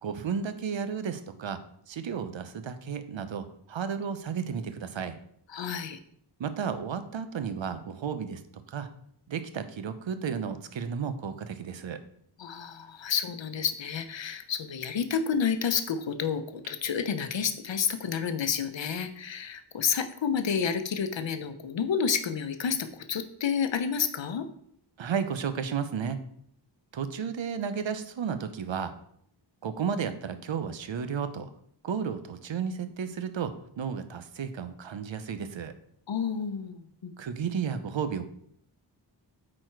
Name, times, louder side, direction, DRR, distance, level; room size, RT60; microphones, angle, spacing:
voice 1, 0.0-1.6 1.9-5.2 6.4-8.4 8.7-8.9 9.3-12.0 25.0-26.3 26.9-28.9 29.6-31.5 31.8-35.7 37.2-38.3, right 7 dB, 90° right, 10 dB, 0.8 m, -33 dB
voice 2, 5.5-6.0 12.4-24.5 36.1-37.1, left 7 dB, 80° left, 9 dB, 0.8 m, -30 dB
8.7 x 4.4 x 4.6 m, 0.68 s
wide cardioid pair, 95°, 44 cm